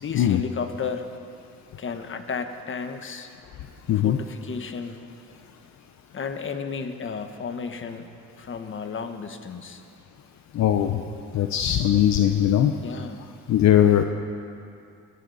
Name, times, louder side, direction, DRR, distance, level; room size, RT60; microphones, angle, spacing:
voice 1, 0.0-1.1 1.8-3.3 3.9-5.0 6.1-8.1 8.4-9.8 12.8-13.3, left 5 dB, 40° left, 7 dB, 1.3 m, -33 dB
voice 2, 10.5-11.0 11.3-12.7 13.5-14.0, left 11 dB, 65° left, 7 dB, 0.8 m, -19 dB
20.0 x 16.5 x 4.2 m, 2.5 s
cardioid pair, 90°, 30 cm